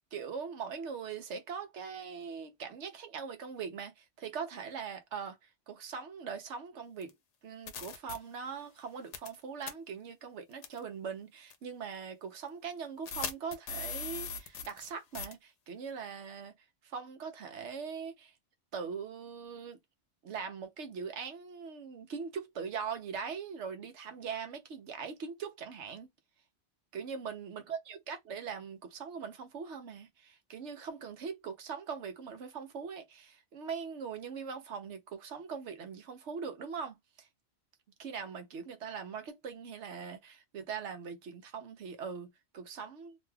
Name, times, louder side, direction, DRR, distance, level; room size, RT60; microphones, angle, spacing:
voice 1, 0.1-7.1 7.4-16.5 16.8-18.3 18.7-19.8 20.2-26.1 26.9-37.3 38.0-43.2, right 6 dB, 80° right, 1.1 m, -41 dB
sound 1, 7.0-7.1 7.7-8.2 9.1-9.4 9.6-9.7 10.6-10.8 11.5-11.6 13.1-14.9 15.1-15.3, left 6 dB, 85° left, 1.0 m, -39 dB
2.9 x 2.2 x 3.2 m
omnidirectional pair, 1.2 m